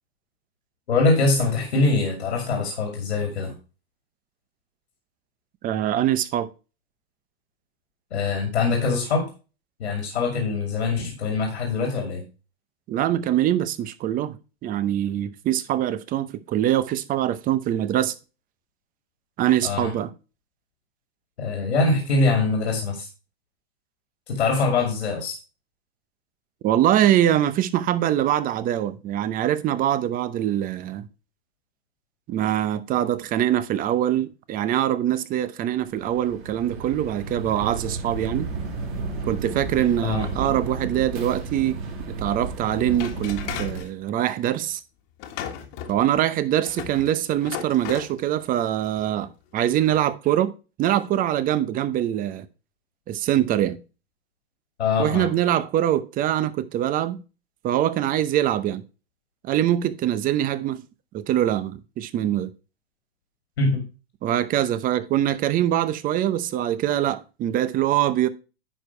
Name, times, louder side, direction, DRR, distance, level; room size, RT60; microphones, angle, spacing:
voice 1, 0.9-3.5 8.1-9.3 9.8-12.2 19.6-19.9 21.4-23.1 24.3-25.4 40.0-40.3 54.8-55.3 63.6-63.8, left 3 dB, 85° left, 2.4 m, -23 dB
voice 2, 5.6-6.5 12.9-14.4 14.6-18.1 19.4-20.1 26.6-31.0 32.3-38.5 39.3-41.8 42.1-44.8 45.9-50.5 50.8-52.5 53.1-53.8 55.0-57.2 57.6-58.8 59.4-60.8 61.1-62.5 64.2-68.3, right 11 dB, 25° right, 0.7 m, -23 dB
sound 1, 35.8-43.8, right 3 dB, 50° right, 3.3 m, -33 dB
sound 2, 42.9-43.9 45.2-48.2 48.8-49.0 49.6-50.0, left 9 dB, 45° left, 1.5 m, -36 dB
10.0 x 4.7 x 4.3 m
hypercardioid pair, 120°, 32 cm